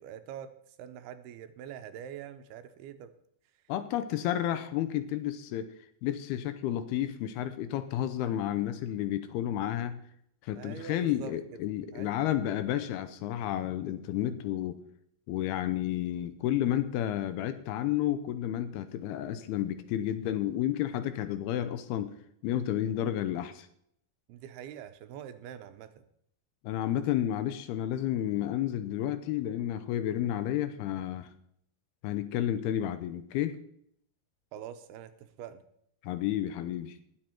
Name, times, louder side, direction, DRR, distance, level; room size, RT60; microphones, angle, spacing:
voice 1, 0.0-3.1 10.6-11.3 11.9-12.1 24.3-26.0 34.5-35.6, right 9 dB, 80° right, 9 dB, 2.7 m, -44 dB
voice 2, 3.7-5.7 6.0-10.0 10.4-14.8 15.3-22.1 22.4-23.7 26.6-31.3 32.0-33.6 36.0-37.0, left 11 dB, 80° left, 11 dB, 2.7 m, -31 dB
19.5 x 7.8 x 4.5 m, 0.69 s
omnidirectional pair, 4.6 m